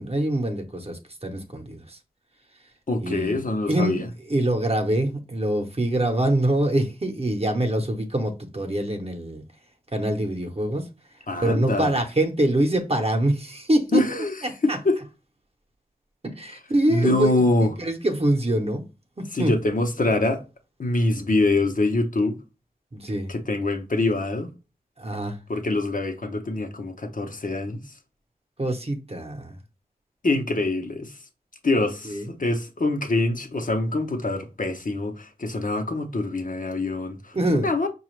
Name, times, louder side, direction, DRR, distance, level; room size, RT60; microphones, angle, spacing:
voice 1, 0.0-2.0 3.0-3.4 3.7-9.4 9.9-10.9 11.4-14.0 14.4-14.8 16.2-18.8 19.2-19.5 21.2-21.3 22.9-23.3 25.0-25.4 28.6-29.6 32.0-32.2 37.3-37.7, right 1 dB, 40° right, 0.8 m, -24 dB
voice 2, 2.9-4.1 11.3-12.0 13.9-15.0 16.9-17.7 19.3-20.4 20.8-22.4 23.3-24.5 25.5-27.8 30.2-31.2 31.6-37.9, left 2 dB, 65° left, 0.7 m, -24 dB
4.8 x 2.3 x 3.1 m
wide cardioid pair, 40°, 15 cm